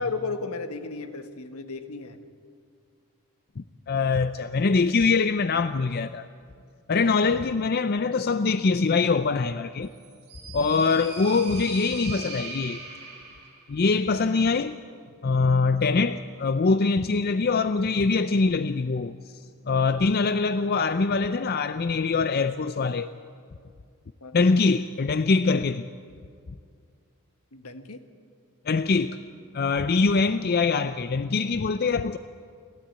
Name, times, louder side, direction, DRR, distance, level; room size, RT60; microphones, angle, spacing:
voice 1, 0.0-2.2 24.2-24.5 27.5-28.0, left 4 dB, 75° left, 1.5 m, -34 dB
voice 2, 3.6-6.3 6.9-9.9 10.5-12.8 13.7-14.8 15.2-19.1 19.7-23.1 24.3-25.9 28.7-29.2 29.5-32.2, left 4 dB, 45° left, 0.5 m, -23 dB
sound 1, 9.9-13.6, right 3 dB, 50° right, 7.6 m, -40 dB
29.0 x 13.0 x 8.8 m
head